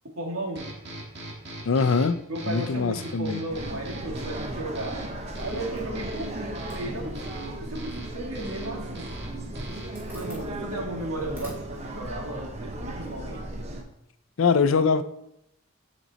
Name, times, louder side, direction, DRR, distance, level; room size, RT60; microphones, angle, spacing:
voice 1, 0.2-0.7 2.3-5.1 5.4-9.2 10.1-13.5, right 1 dB, 85° right, 0 dB, 2.1 m, -35 dB
sound 1, 0.6-10.1, right 2 dB, 50° right, 1.7 m, -42 dB
voice 2, 1.7-2.2 2.5-3.4 14.4-15.0, left 5 dB, 70° left, 13 dB, 0.5 m, -22 dB
sound 2, 3.5-13.8, right 1 dB, 30° right, 0.8 m, -36 dB
Zipper (clothing), 5.1-13.2, equal, 10° right, 2.3 m, -52 dB
9.1 x 5.2 x 4.1 m, 0.81 s
head